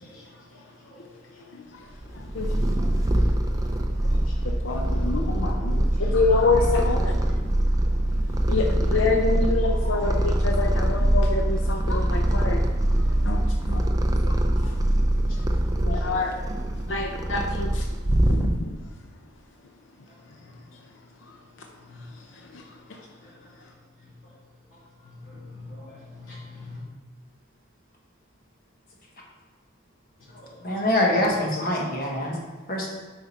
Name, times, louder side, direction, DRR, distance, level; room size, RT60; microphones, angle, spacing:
Purr, 2.0-18.8, right 1 dB, 15° right, 0.5 m, -23 dB
voice 1, 2.4-2.9 6.0-6.2 9.6-10.0 16.0-16.3 23.2-23.3 25.2-26.8 30.3-30.8, left 2 dB, 85° left, -8 dB, 2.6 m, -43 dB
voice 2, 4.6-7.1 8.5-12.6 13.2-13.8 14.2-14.3 15.9-16.3 16.9-17.8 18.3-18.7, left 3 dB, 70° left, 2 dB, 0.6 m, -26 dB
voice 3, 30.6-32.4 32.7-32.9, left 1 dB, 45° left, -2 dB, 1.4 m, -24 dB
8.3 x 5.1 x 4.3 m, 1.3 s
head